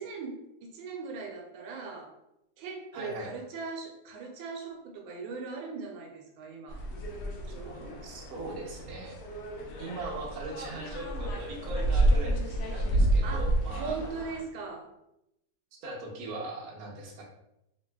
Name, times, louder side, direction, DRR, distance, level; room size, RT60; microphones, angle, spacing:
voice 1, 0.0-2.1 2.6-6.8 7.5-8.0 13.2-13.5 13.8-14.9, right 4 dB, 85° right, 1 dB, 1.3 m, -39 dB
voice 2, 2.9-3.3 8.0-9.4 9.8-14.0 15.8-17.2, right 2 dB, 65° right, -3 dB, 1.0 m, -40 dB
sound 1, 6.7-14.4, right 1 dB, 70° left, 1.0 m, -30 dB
3.2 x 2.6 x 2.2 m, 0.85 s
omnidirectional pair, 2.1 m